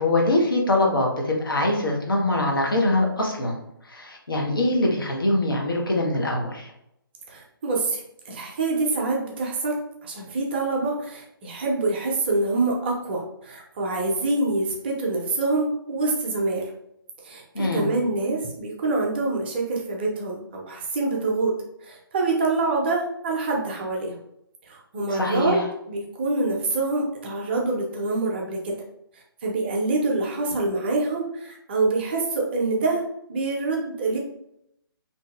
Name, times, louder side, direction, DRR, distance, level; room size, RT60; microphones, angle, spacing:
voice 1, 0.0-3.6 3.8-6.7 17.5-17.9 25.1-25.6, left 2 dB, 65° left, -1 dB, 0.9 m, -23 dB
voice 2, 7.3-16.7 17.2-24.2 24.7-28.8 29.4-33.0 33.3-34.2, right 3 dB, 30° right, -1 dB, 0.6 m, -26 dB
2.7 x 2.7 x 2.4 m, 0.78 s
figure-of-eight pair, 140°, 12 cm